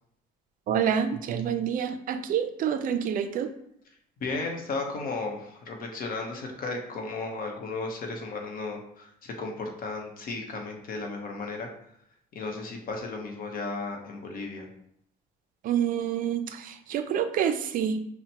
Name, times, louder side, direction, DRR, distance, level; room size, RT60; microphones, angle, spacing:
voice 1, 0.7-3.5 15.6-18.0, right 8 dB, 55° right, 9 dB, 0.4 m, -27 dB
voice 2, 4.2-11.7 12.3-14.7, left 3 dB, 60° left, 2 dB, 0.9 m, -34 dB
5.7 x 2.2 x 2.8 m, 0.72 s
cardioid pair, 110°, 17 cm